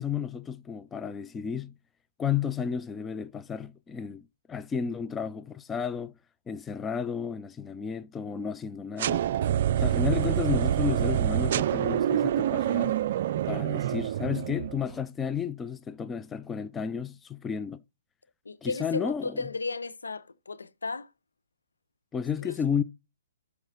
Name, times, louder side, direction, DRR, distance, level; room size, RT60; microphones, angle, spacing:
voice 1, 0.0-1.7 2.2-6.1 6.5-9.2 9.8-13.0 13.5-17.8 18.6-19.4 22.1-22.8, left 7 dB, 15° left, 0.5 m, -32 dB
sound 1, 9.0-14.9, right 11 dB, 50° right, 0.4 m, -26 dB
voice 2, 18.4-21.1 22.4-22.6, left 3 dB, 80° left, 1.0 m, -34 dB
12.5 x 4.7 x 4.1 m
figure-of-eight pair, 125°, 0 cm